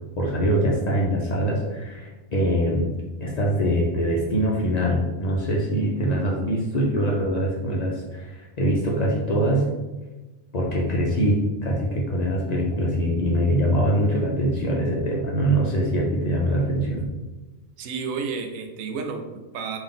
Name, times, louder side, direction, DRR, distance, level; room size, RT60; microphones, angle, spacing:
voice 1, 0.2-2.9 3.2-9.7 10.5-17.0, equal, 70° left, -2 dB, 0.4 m, -23 dB
voice 2, 17.8-19.8, right 5 dB, 80° right, 5 dB, 1.0 m, -31 dB
3.7 x 2.6 x 3.6 m, 1.1 s
omnidirectional pair, 1.4 m